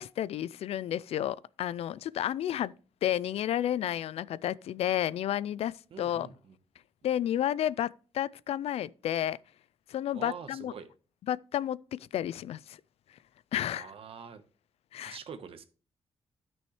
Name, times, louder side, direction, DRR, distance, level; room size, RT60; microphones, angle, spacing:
voice 1, 0.0-2.7 3.0-6.3 7.0-9.4 9.9-10.7 11.3-12.8 13.5-13.9 14.9-15.2, left 11 dB, 90° left, 0.4 m, -31 dB
voice 2, 5.9-6.6 10.1-10.9 13.7-14.4 15.0-15.6, right 7 dB, 70° right, 1.2 m, -44 dB
13.0 x 6.2 x 3.2 m
wide cardioid pair, 140°, 10 cm